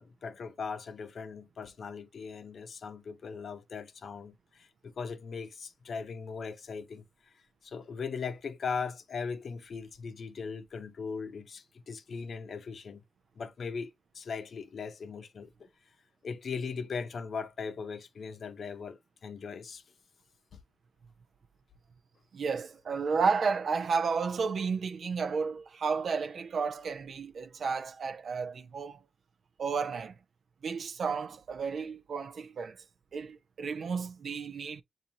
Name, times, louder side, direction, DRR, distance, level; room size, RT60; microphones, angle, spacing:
voice 1, 0.0-7.3 7.6-13.0 13.4-15.7 16.2-19.8 20.5-20.6, left 5 dB, 75° left, 0.7 m, -39 dB
voice 2, 22.3-29.0 29.6-30.1 30.6-32.8 33.1-34.8, right 5 dB, 75° right, 0.4 m, -32 dB
7.2 x 2.6 x 2.7 m
cardioid pair, 80°, 0 cm